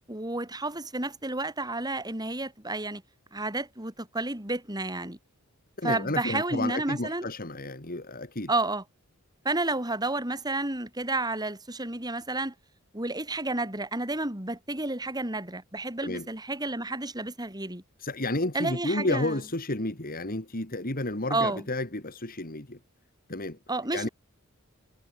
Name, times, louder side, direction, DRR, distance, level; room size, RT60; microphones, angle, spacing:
voice 1, 0.1-3.0 3.3-5.2 5.8-7.3 8.5-8.8 9.4-12.5 12.9-17.8 18.5-19.4 21.3-21.6 23.7-24.1, right 2 dB, 20° right, 4.4 m, -31 dB
voice 2, 5.8-8.5 16.0-16.3 18.0-22.8 23.3-23.6 23.9-24.1, left 2 dB, 40° left, 3.1 m, -31 dB
head